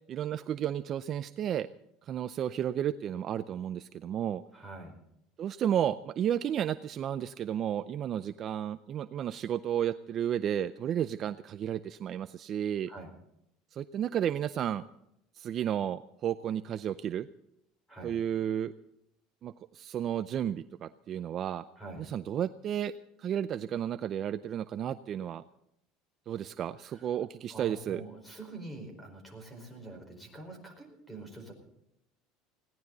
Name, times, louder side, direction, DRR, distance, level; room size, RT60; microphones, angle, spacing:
voice 1, 0.1-1.7 2.1-4.4 5.4-12.9 13.7-14.8 15.4-17.3 18.0-18.7 19.4-21.6 22.0-22.9 23.2-25.4 26.3-28.0, right 10 dB, 35° right, 12 dB, 0.5 m, -32 dB
voice 2, 4.5-4.9 12.9-13.1 17.9-18.2 21.8-22.0 26.9-27.1 27.5-31.5, right 2 dB, 5° left, 5 dB, 4.8 m, -45 dB
20.5 x 17.0 x 4.0 m, 0.79 s
cardioid pair, 155°, 0 cm